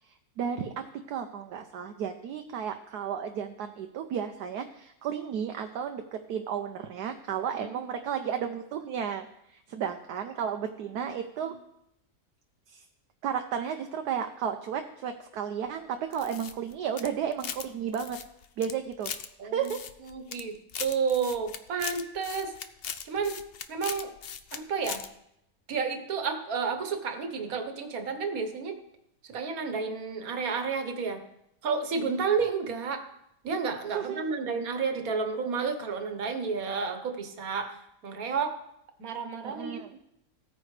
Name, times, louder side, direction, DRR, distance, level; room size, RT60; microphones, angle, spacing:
voice 1, 0.4-9.3 9.5-11.5 12.7-12.8 13.2-18.2 18.6-19.1 19.5-19.8 33.9-34.2 39.4-39.9, right 8 dB, 90° right, 5 dB, 1.3 m, -33 dB
sound 1, 16.1-17.7 17.9-19.3 19.6-20.4 20.7-24.6 24.8-25.1, left 8 dB, 65° left, 0.6 m, -39 dB
voice 2, 19.4-19.7 20.0-22.5 23.0-23.4 23.7-24.1 24.5-25.0 25.7-28.8 29.3-31.2 31.6-33.0 33.4-37.8 38.0-38.5 39.0-39.9, right 5 dB, 65° right, 6 dB, 1.6 m, -31 dB
16.0 x 9.4 x 3.3 m, 0.79 s
omnidirectional pair, 1.7 m